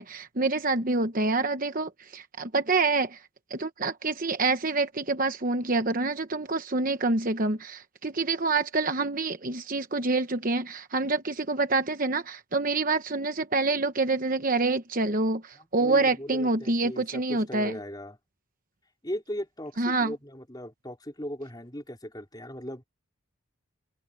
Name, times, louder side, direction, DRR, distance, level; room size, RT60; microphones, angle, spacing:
voice 1, 0.0-3.2 3.5-17.8 19.8-20.1, right 3 dB, 40° right, 1.0 m, -27 dB
voice 2, 15.6-18.2 19.0-22.8, equal, 20° left, 4.5 m, -38 dB
head